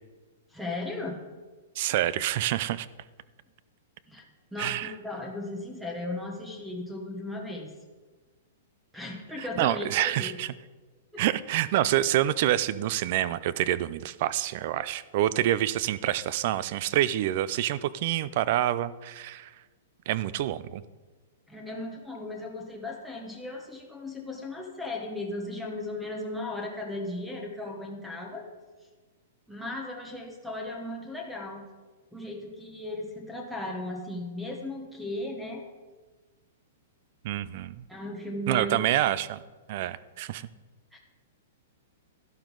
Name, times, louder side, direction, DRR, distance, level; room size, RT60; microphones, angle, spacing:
voice 1, 0.5-1.2 4.1-4.2 4.5-7.7 8.9-10.4 11.1-11.2 21.5-28.5 29.5-31.7 32.1-35.6 37.9-38.8 40.9-41.0, left 2 dB, ahead, 1 dB, 1.0 m, -36 dB
voice 2, 1.8-2.9 4.6-4.9 9.4-10.5 11.2-19.5 20.1-20.8 37.2-37.8 38.5-39.4 39.7-40.5, right 13 dB, 40° right, 18 dB, 0.4 m, -27 dB
12.0 x 11.0 x 3.9 m, 1.3 s
hypercardioid pair, 170°, 0 cm